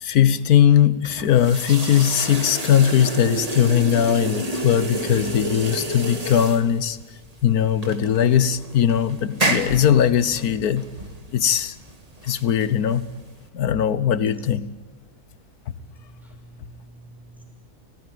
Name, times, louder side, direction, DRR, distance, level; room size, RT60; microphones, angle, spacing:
voice 1, 0.0-7.0 7.4-10.8 11.3-11.7 12.2-13.1 13.5-14.7, left 9 dB, 85° left, 15 dB, 1.5 m, -19 dB
sound 1, 1.0-13.5, right 1 dB, 25° right, 2.0 m, -30 dB
voice 2, 15.8-17.4, right 1 dB, ahead, 1 dB, 5.8 m, -47 dB
29.5 x 17.5 x 9.2 m, 1.2 s
omnidirectional pair, 1.6 m